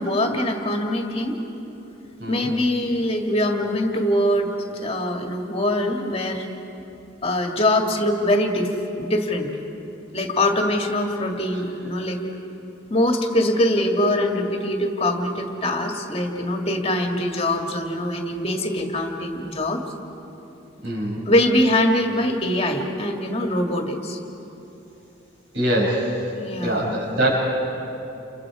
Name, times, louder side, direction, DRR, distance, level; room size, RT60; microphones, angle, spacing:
voice 1, 0.0-1.4 2.3-6.5 7.2-8.7 9.0-9.5 10.1-12.2 12.9-19.8 21.3-24.2 26.4-26.8, left 1 dB, 30° left, 2 dB, 1.9 m, -23 dB
voice 2, 2.2-2.5 11.5-11.6 20.8-21.3 25.5-26.2 26.6-27.4, right 1 dB, 65° right, -3 dB, 7.0 m, -23 dB
29.5 x 29.0 x 4.9 m, 3.0 s
head